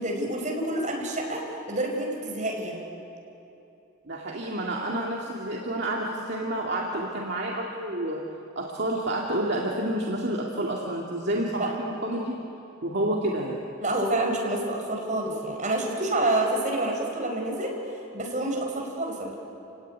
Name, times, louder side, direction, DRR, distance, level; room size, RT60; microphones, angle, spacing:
voice 1, 0.0-1.4 1.7-2.8 11.6-11.7 13.8-17.7 18.1-19.3, right 1 dB, 35° right, 0 dB, 5.2 m, -28 dB
voice 2, 4.1-8.3 8.6-12.4 12.8-13.6, right 1 dB, 55° right, -2 dB, 2.3 m, -29 dB
28.0 x 17.5 x 9.7 m, 2.8 s
head